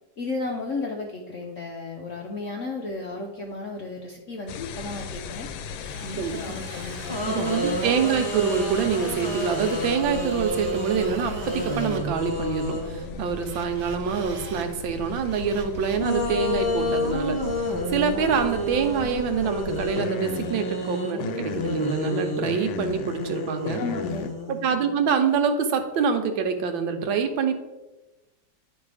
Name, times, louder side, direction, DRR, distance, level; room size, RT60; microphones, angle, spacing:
voice 1, 0.2-5.5 6.0-7.5 23.7-24.3, left 3 dB, 70° left, 1 dB, 0.7 m, -34 dB
sound 1, 4.5-24.3, left 5 dB, 85° left, 1.3 m, -37 dB
Drill, 5.7-12.0 13.4-14.7 15.1-16.1, right 4 dB, 60° right, 1.0 m, -44 dB
voice 2, 6.2-6.6 7.2-17.4 17.9-23.8 24.5-27.5, right 6 dB, 85° right, 6 dB, 1.5 m, -26 dB
sound 2, 7.1-13.4 16.0-25.1, equal, 30° left, 0.4 m, -30 dB
9.9 x 3.3 x 4.8 m, 1.1 s
omnidirectional pair, 2.1 m